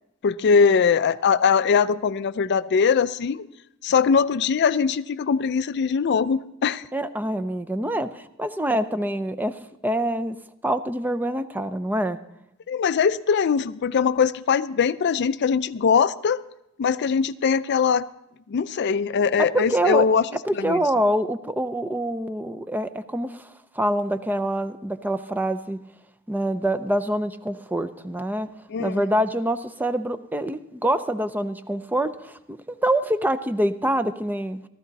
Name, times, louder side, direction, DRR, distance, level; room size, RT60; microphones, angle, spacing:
voice 1, 0.2-3.5 3.8-6.8 12.7-16.4 16.8-18.0 18.5-20.2 20.6-20.8 28.7-29.0, left 6 dB, 55° left, 14 dB, 0.4 m, -21 dB
voice 2, 6.9-10.4 10.6-12.2 19.4-20.1 20.4-25.8 26.3-28.5 28.8-32.6 32.8-34.6, right 1 dB, 10° right, 11 dB, 0.4 m, -25 dB
15.0 x 14.0 x 4.0 m, 0.85 s
head